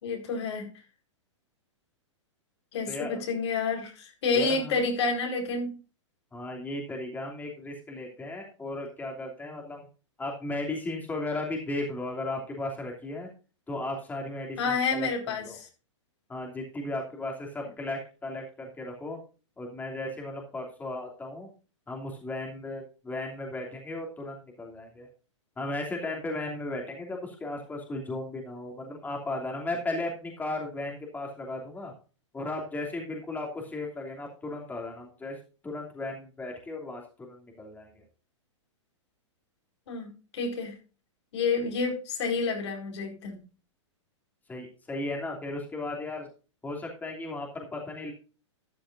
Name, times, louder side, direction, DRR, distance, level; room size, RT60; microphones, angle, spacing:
voice 1, 0.0-0.7 2.7-5.8 14.6-15.7 39.9-40.7 41.3-43.4, left 4 dB, 65° left, 3 dB, 4.7 m, -29 dB
voice 2, 2.9-3.2 4.3-4.8 6.3-9.9 10.2-13.3 13.7-15.1 15.4-15.6 16.3-19.2 19.6-21.5 21.9-25.1 25.6-31.9 32.3-35.4 35.6-37.0 37.3-38.0 44.5-46.3 46.6-48.1, left 2 dB, 10° left, 0 dB, 3.0 m, -35 dB
13.0 x 10.5 x 2.6 m, 0.34 s
hypercardioid pair, 115°, 16 cm